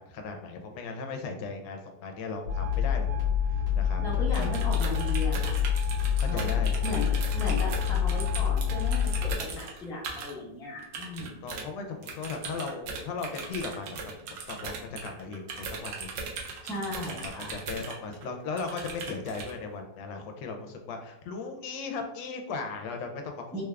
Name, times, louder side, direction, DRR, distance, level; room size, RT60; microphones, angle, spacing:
voice 1, 0.0-3.1 3.5-4.5 6.2-6.9 11.2-16.1 17.1-23.6, left 4 dB, 75° left, 4 dB, 1.2 m, -37 dB
sound 1, 2.4-9.3, left 8 dB, 65° right, 1.7 m, -27 dB
voice 2, 4.0-5.6 6.3-11.4 16.6-17.5 23.5-23.6, left 1 dB, 5° left, -7 dB, 0.4 m, -36 dB
sound 2, 4.3-10.3 10.8-11.7 12.0-18.2 18.6-19.5, right 4 dB, 85° right, 1.4 m, -38 dB
3.5 x 2.3 x 3.2 m, 0.90 s
omnidirectional pair, 2.0 m